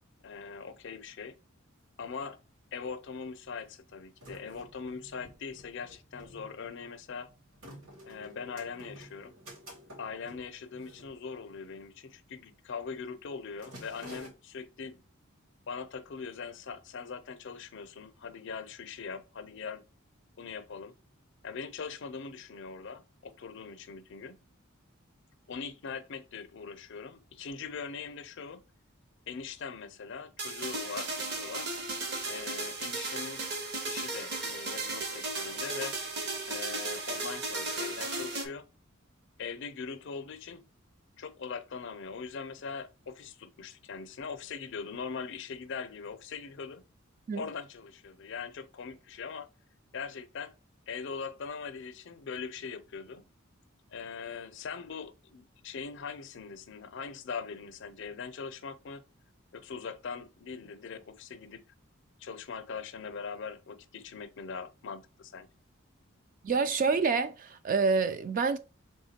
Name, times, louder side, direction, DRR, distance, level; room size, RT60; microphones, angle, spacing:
voice 1, 0.2-1.4 2.0-2.4 2.7-7.3 8.0-9.3 10.0-15.0 15.7-19.8 20.4-20.9 21.4-24.4 25.5-28.6 29.3-31.7 32.2-33.4 33.9-36.0 36.5-38.7 39.4-40.6 41.2-46.8 47.4-49.5 49.9-50.5 50.9-53.2 53.9-59.0 59.5-61.6 62.2-65.5, left 5 dB, 65° left, 0.5 m, -41 dB
sound 1, 1.8-1.9 2.1-2.9 3.5-11.8 12.1-12.4 12.7-13.0 13.3-14.3, equal, 85° right, 2.4 m, -51 dB
sound 2, 30.4-38.5, right 3 dB, 55° right, 1.1 m, -35 dB
voice 2, 66.4-68.6, right 4 dB, 40° right, 0.3 m, -27 dB
3.6 x 3.4 x 4.2 m
head